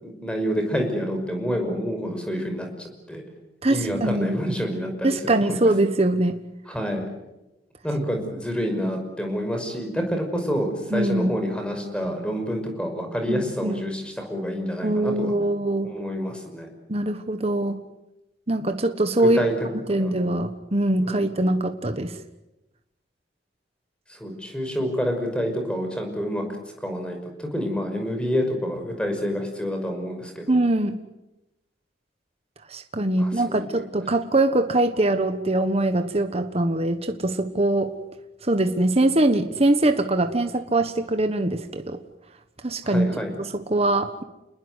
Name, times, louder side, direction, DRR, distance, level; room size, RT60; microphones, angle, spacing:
voice 1, 0.0-3.2 3.7-5.7 6.7-7.1 7.8-15.3 15.8-16.7 19.1-19.5 20.0-20.1 21.0-21.2 24.1-26.4 26.8-30.6 33.2-33.8 42.8-43.3, equal, 5° left, 4 dB, 5.7 m, -28 dB
voice 2, 3.6-4.4 5.0-6.4 10.9-11.3 13.3-13.9 14.8-15.9 16.9-17.8 18.5-19.5 19.9-22.1 30.5-31.0 32.7-37.9 38.4-42.0 42.6-43.1 43.4-44.2, right 1 dB, 35° right, 8 dB, 1.4 m, -23 dB
29.0 x 21.0 x 8.2 m, 0.97 s
head